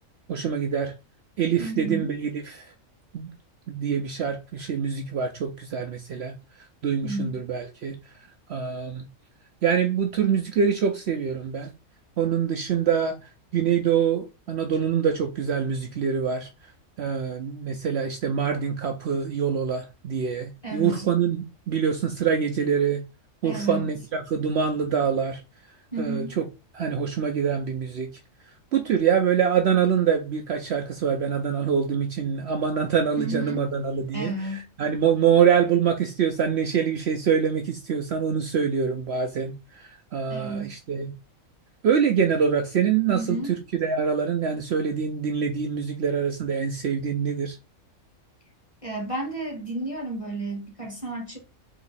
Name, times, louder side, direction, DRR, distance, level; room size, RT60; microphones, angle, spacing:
voice 1, 0.3-0.9 1.4-2.7 3.1-3.3 3.7-6.3 6.8-8.0 8.5-9.0 9.6-11.7 12.2-13.2 13.5-16.5 17.0-23.0 23.4-25.4 26.0-26.4 26.7-28.1 28.7-41.1 41.8-47.6, right 7 dB, 60° right, 0.7 m, -25 dB
voice 2, 1.6-2.2 7.0-7.3 20.6-21.1 23.4-23.9 25.9-26.4 33.2-33.7 34.1-34.7 40.3-40.7 43.1-43.5 48.8-51.4, right 2 dB, 25° left, 1.2 m, -32 dB
3.8 x 2.9 x 4.1 m
omnidirectional pair, 1.4 m